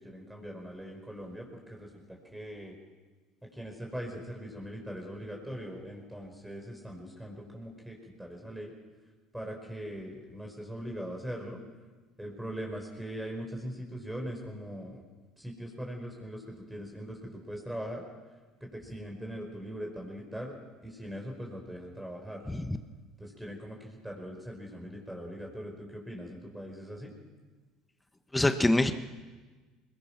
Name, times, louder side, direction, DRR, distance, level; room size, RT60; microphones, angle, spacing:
voice 1, 0.0-2.8 3.5-8.7 9.3-11.6 12.2-15.0 15.4-18.0 18.6-20.5 20.8-22.4 23.2-27.2, equal, 5° right, 1 dB, 5.1 m, -41 dB
voice 2, 22.5-22.8 28.3-28.9, left 1 dB, 10° left, 8 dB, 1.4 m, -25 dB
23.0 x 21.5 x 6.0 m, 1.3 s
hypercardioid pair, 80°, 0 cm